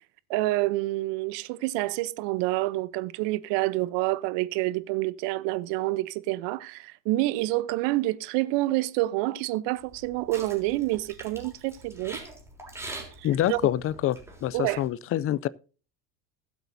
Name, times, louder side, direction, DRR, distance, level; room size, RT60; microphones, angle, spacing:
voice 1, 0.3-12.2 13.2-13.6 14.5-14.8, right 18 dB, 60° right, 0.9 m, -28 dB
sound 1, 9.8-14.9, right 2 dB, 5° right, 3.6 m, -44 dB
voice 2, 13.2-15.5, left 12 dB, 30° left, 0.4 m, -26 dB
19.5 x 8.1 x 2.7 m
supercardioid pair, 115°, 49 cm